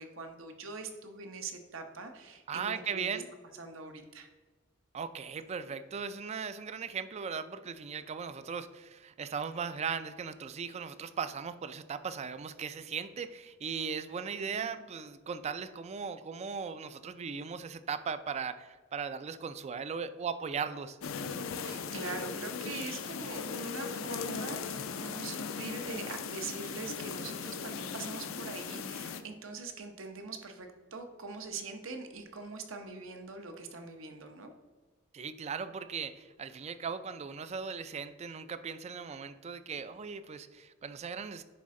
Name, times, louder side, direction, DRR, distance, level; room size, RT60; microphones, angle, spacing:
voice 1, 0.0-3.2 3.6-4.3 14.5-14.9 21.6-34.5, right 3 dB, 70° right, 6 dB, 0.9 m, -43 dB
voice 2, 2.5-3.3 4.9-21.0 35.1-41.4, right 6 dB, 30° right, 13 dB, 0.3 m, -38 dB
sound 1, 21.0-29.2, left 5 dB, 80° left, 0.5 m, -38 dB
10.0 x 4.2 x 3.7 m, 1.4 s
head